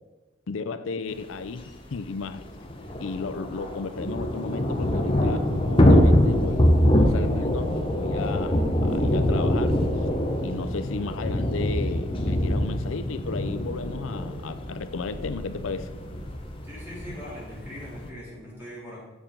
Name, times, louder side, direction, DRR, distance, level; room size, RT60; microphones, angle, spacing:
voice 1, 0.5-2.4 3.0-9.8 10.4-15.9, left 4 dB, 85° left, 10 dB, 0.5 m, -34 dB
Thunder / Rain, 1.5-1.6 1.8-1.9 2.2-18.1, left 1 dB, 25° left, 1.0 m, -24 dB
voice 2, 16.6-19.0, equal, 10° right, -7 dB, 3.4 m, -41 dB
7.3 x 7.1 x 5.2 m, 1.2 s
head